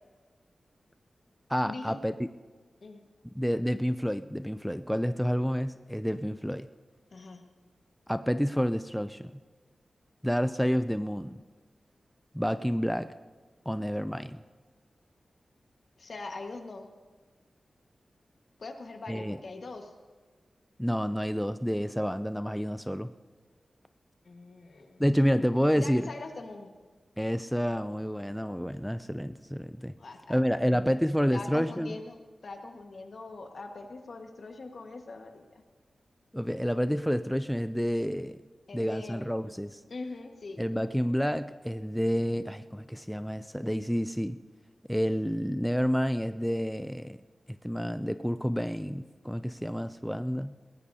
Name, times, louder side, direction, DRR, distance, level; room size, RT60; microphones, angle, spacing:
voice 1, 1.5-2.1 3.4-6.7 8.1-9.3 10.2-11.4 12.3-13.1 13.7-14.4 19.1-19.4 20.8-23.1 25.0-26.1 27.2-29.9 30.3-32.0 36.3-38.4 38.7-39.8 40.6-44.4 44.9-47.2 47.5-50.5, equal, ahead, 10 dB, 0.3 m, -29 dB
voice 2, 7.1-7.4 16.0-16.9 18.6-19.9 24.2-25.0 25.7-26.7 30.0-31.0 31.3-35.6 38.7-39.3 39.9-40.6, left 3 dB, 60° left, 4 dB, 1.5 m, -42 dB
21.5 x 18.0 x 2.8 m, 1.4 s
wide cardioid pair, 130°, 0 cm